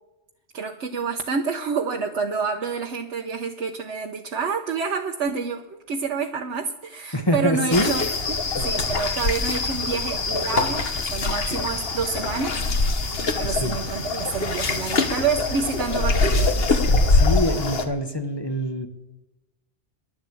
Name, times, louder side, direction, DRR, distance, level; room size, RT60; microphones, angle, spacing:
voice 1, 0.5-12.6 13.4-16.9, right 5 dB, 85° right, 3 dB, 1.2 m, -28 dB
voice 2, 7.1-7.9 8.6-8.7 13.4-13.7 16.9-18.9, equal, 25° left, 6 dB, 1.3 m, -25 dB
sound 1, 7.7-17.8, left 3 dB, 60° left, 1.5 m, -23 dB
12.5 x 11.0 x 8.4 m, 1.0 s
omnidirectional pair, 1.1 m